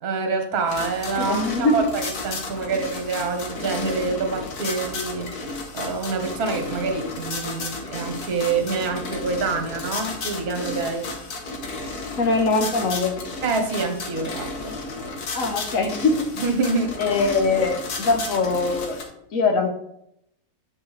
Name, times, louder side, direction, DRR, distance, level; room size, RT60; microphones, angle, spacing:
voice 1, 0.0-5.3 5.7-11.1 13.4-14.8 16.4-17.0, right 4 dB, 70° right, 5 dB, 1.6 m, -26 dB
sound 1, 0.7-19.0, left 3 dB, 75° left, 1.7 m, -33 dB
voice 2, 1.2-1.8 12.2-13.1 15.3-16.2 17.0-19.0 19.3-19.7, left 3 dB, 60° left, 4 dB, 1.3 m, -22 dB
9.5 x 5.3 x 3.2 m, 0.76 s
omnidirectional pair, 1.7 m